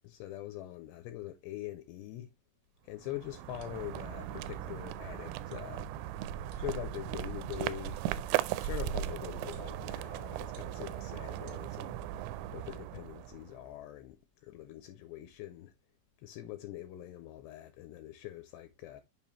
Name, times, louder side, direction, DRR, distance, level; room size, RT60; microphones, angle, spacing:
voice 1, 0.0-2.3 2.8-5.9 6.5-8.0 8.6-12.0 12.5-15.7 16.2-19.0, left 14 dB, 80° left, 2.5 m, -43 dB
sound 1, 2.9-13.7, right 12 dB, 90° right, 2.9 m, -38 dB
sound 2, 3.6-4.0 4.5-4.6 5.5-5.6 6.5-6.7 7.5-8.1 8.5-8.8 9.5-9.8 10.5-10.9 11.5-11.6, right 5 dB, 65° right, 2.7 m, -58 dB
6.9 x 5.4 x 2.9 m
omnidirectional pair, 5.2 m